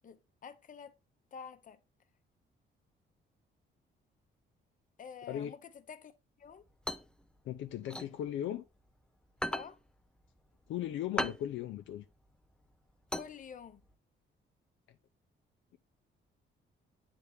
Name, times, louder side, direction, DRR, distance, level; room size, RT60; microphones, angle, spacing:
voice 1, 0.0-0.9 1.3-1.8 5.0-6.1 6.4-6.6 9.5-9.8 13.1-13.8, left 7 dB, 40° left, 0.7 m, -48 dB
sound 1, 6.5-8.9 9.3-13.9, left 1 dB, 5° left, 0.4 m, -39 dB
voice 2, 7.4-8.6 10.7-12.1, left 11 dB, 75° left, 0.5 m, -37 dB
8.0 x 3.4 x 3.4 m
cardioid pair, 90°, 20 cm